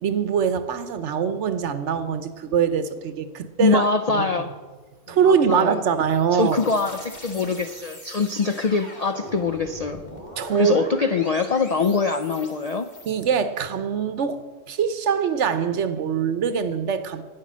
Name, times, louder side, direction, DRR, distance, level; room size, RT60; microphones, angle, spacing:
voice 1, 0.0-3.8 4.1-4.2 5.1-6.6 10.4-10.8 13.1-17.2, right 7 dB, 70° right, 11 dB, 1.1 m, -23 dB
voice 2, 3.6-4.5 5.2-5.8 6.3-10.0 10.5-12.9, left 4 dB, 55° left, 8 dB, 0.4 m, -23 dB
sound 1, 5.7-13.3, left 1 dB, 35° left, 2.4 m, -42 dB
12.0 x 9.5 x 6.1 m, 1.4 s
omnidirectional pair, 1.3 m